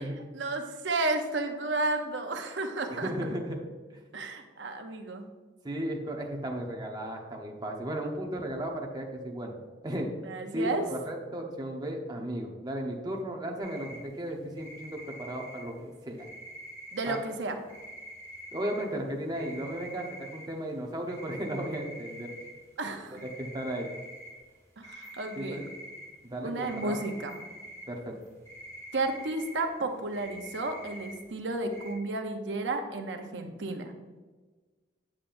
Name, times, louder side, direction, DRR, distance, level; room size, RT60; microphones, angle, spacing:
voice 1, 0.3-3.1 4.1-5.2 10.2-10.8 16.9-17.6 22.8-23.2 24.8-25.6 26.4-27.4 28.9-33.9, right 2 dB, 90° right, 5 dB, 0.7 m, -32 dB
voice 2, 2.9-3.6 3.9-4.0 5.6-9.5 9.8-10.1 10.5-16.2 17.1-17.2 18.5-22.3 23.4-23.9 25.4-25.6 26.2-27.0 27.9-28.2, right 1 dB, 25° right, 0 dB, 0.9 m, -35 dB
sound 1, 13.6-14.0 14.6-15.6 16.2-17.2 17.7-18.8 19.3-20.4 21.1-22.5 23.2-24.3 24.8-26.0 26.6-27.8 28.2-29.5 30.1-31.1 31.7-31.9, equal, 15° left, 2.4 m, -45 dB
8.5 x 7.4 x 2.6 m, 1.3 s
head